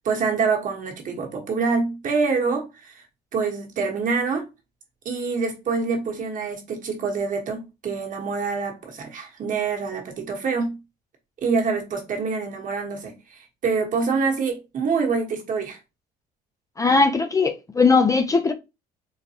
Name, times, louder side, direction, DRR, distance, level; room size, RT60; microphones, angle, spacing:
voice 1, 0.0-3.0 3.3-4.5 5.0-10.8 11.4-15.8, right 4 dB, 50° right, 1.2 m, -26 dB
voice 2, 16.8-18.5, left 4 dB, 20° left, 0.4 m, -19 dB
3.9 x 2.2 x 2.8 m
cardioid pair, 110°, 17 cm